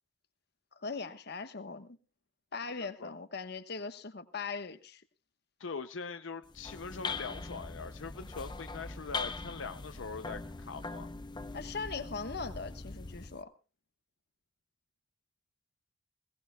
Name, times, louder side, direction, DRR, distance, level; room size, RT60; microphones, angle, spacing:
voice 1, 0.8-2.0 2.5-5.0 11.5-13.5, left 4 dB, 60° left, 1.3 m, -40 dB
voice 2, 2.8-3.1 5.6-11.1, left 5 dB, 85° left, 0.7 m, -42 dB
sound 1, 6.4-13.4, left 3 dB, 25° left, 0.7 m, -41 dB
20.5 x 18.0 x 2.3 m
head